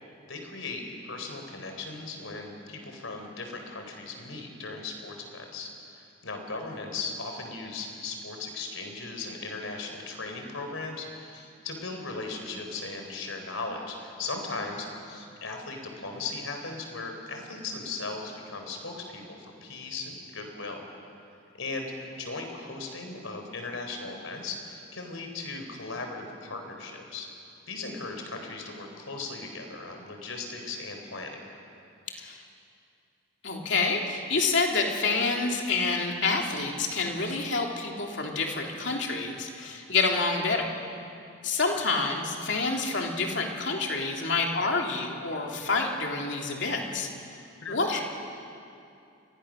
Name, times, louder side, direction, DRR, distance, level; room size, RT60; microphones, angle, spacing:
voice 1, 0.3-5.7 6.0-20.8 21.6-27.3 27.7-31.4 47.6-47.8, left 3 dB, 90° left, 3 dB, 4.3 m, -37 dB
voice 2, 32.1-32.4 33.4-40.8 41.4-47.1 47.7-48.0, left 3 dB, 65° left, 1 dB, 3.0 m, -28 dB
29.5 x 23.0 x 6.5 m, 2.6 s
head